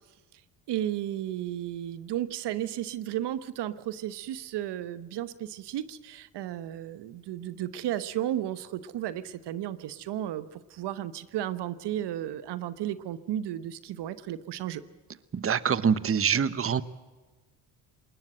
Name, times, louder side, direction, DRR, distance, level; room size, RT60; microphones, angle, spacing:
voice 1, 0.7-14.8, right 12 dB, 75° right, 15 dB, 1.1 m, -34 dB
voice 2, 15.3-16.8, right 7 dB, 30° right, 17 dB, 1.0 m, -25 dB
20.5 x 20.0 x 7.8 m, 1.3 s
supercardioid pair, 70°, 42 cm